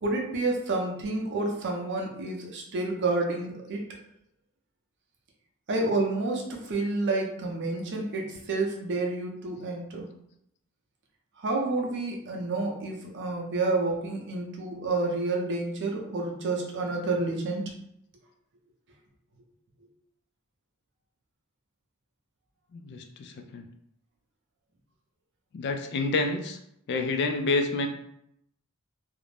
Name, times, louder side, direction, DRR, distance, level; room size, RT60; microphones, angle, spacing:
voice 1, 0.0-3.9 5.7-10.1 11.4-17.7, right 2 dB, 55° right, 1 dB, 0.6 m, -29 dB
voice 2, 22.7-23.7 25.5-26.6 26.9-27.9, left 3 dB, 50° left, 6 dB, 0.3 m, -28 dB
2.5 x 2.1 x 3.2 m, 0.74 s
head